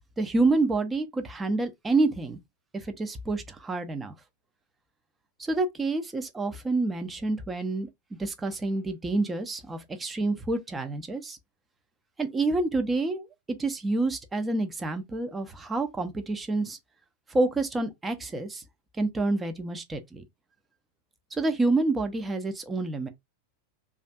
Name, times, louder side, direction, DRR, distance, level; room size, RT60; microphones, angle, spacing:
voice 1, 0.2-2.4 2.7-4.1 5.4-7.9 8.2-11.4 12.2-13.3 13.6-16.8 17.3-18.6 19.0-20.2 21.3-23.1, right 2 dB, 15° right, 0.5 m, -28 dB
2.4 x 2.3 x 2.2 m
figure-of-eight pair, 90°, 0 cm